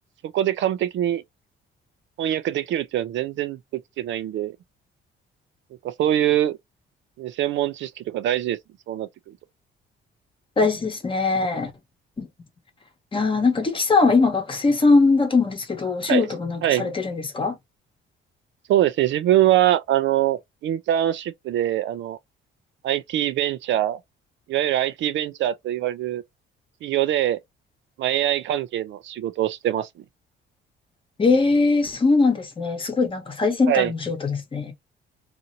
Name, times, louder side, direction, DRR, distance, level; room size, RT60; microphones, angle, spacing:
voice 1, 0.2-1.2 2.2-4.6 5.8-6.6 7.2-8.6 8.9-9.1 16.1-16.3 16.6-16.9 18.7-22.2 22.8-24.0 24.5-26.2 26.8-27.4 28.0-29.9 33.7-33.9, right 12 dB, 65° right, 0.5 m, -23 dB
voice 2, 10.6-11.7 12.2-12.3 13.1-17.6 31.2-34.7, left 3 dB, 25° left, 1.0 m, -21 dB
2.8 x 2.6 x 2.6 m
cardioid pair, 130°, 20 cm